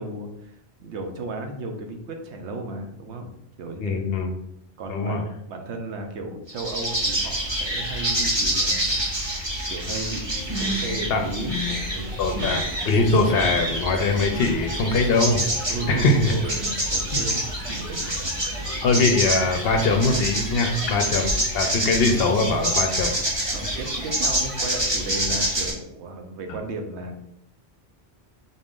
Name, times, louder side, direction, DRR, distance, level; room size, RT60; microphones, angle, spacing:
voice 1, 0.0-4.1 4.8-9.0 9.7-12.5 15.4-15.5 15.7-18.4 20.7-21.1 23.5-27.2, right 2 dB, 80° right, 4 dB, 1.0 m, -34 dB
voice 2, 3.8-4.3 4.9-5.2 11.1-11.2 12.2-15.4 15.9-16.3 17.1-17.2 18.8-23.1, left 3 dB, 65° left, 5 dB, 0.8 m, -22 dB
sound 1, 6.5-25.7, right 1 dB, 25° right, 1.0 m, -27 dB
sound 2, 12.0-25.1, right 2 dB, 50° right, 0.4 m, -39 dB
4.0 x 2.5 x 3.6 m, 0.78 s
omnidirectional pair, 1.1 m